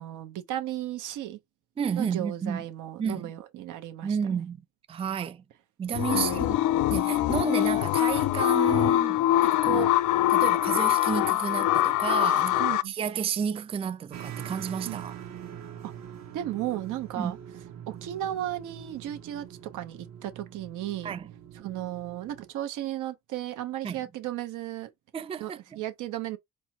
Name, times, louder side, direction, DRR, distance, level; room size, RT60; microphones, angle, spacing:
voice 1, 0.0-1.4 2.0-4.2 6.1-6.5 9.7-9.9 12.6-12.9 14.8-15.0 15.8-15.9 16.3-17.4 17.9-19.5 19.7-21.1 21.5-24.9 25.4-26.4, right 13 dB, 85° right, 0.9 m, -35 dB
voice 2, 1.8-2.6 3.0-3.3 4.0-5.4 5.8-6.6 6.9-10.0 10.3-15.2 17.2-17.3 21.0-21.3 23.8-24.0 25.1-25.8, right 7 dB, 20° right, 0.3 m, -31 dB
sound 1, 5.9-12.8, left 14 dB, 80° left, 0.5 m, -23 dB
sound 2, 14.1-22.5, right 9 dB, 65° right, 1.1 m, -43 dB
4.5 x 2.1 x 4.3 m
cardioid pair, 90°, 30 cm